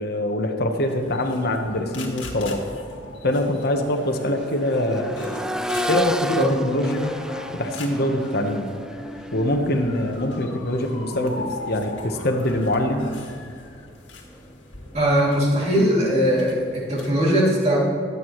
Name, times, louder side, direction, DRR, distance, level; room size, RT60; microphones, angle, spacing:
voice 1, 0.0-2.6 3.2-5.2 5.9-7.1 7.5-8.7 9.3-13.1, left 1 dB, 55° left, 4 dB, 1.1 m, -24 dB
sound 1, 0.9-17.1, left 2 dB, 80° left, 1.8 m, -40 dB
Accelerating revving vroom, 2.2-2.3 2.7-12.6 14.3-14.4, equal, 5° right, 0.4 m, -33 dB
voice 2, 14.9-17.8, equal, 35° right, -5 dB, 2.7 m, -20 dB
22.5 x 8.2 x 3.1 m, 2.2 s
head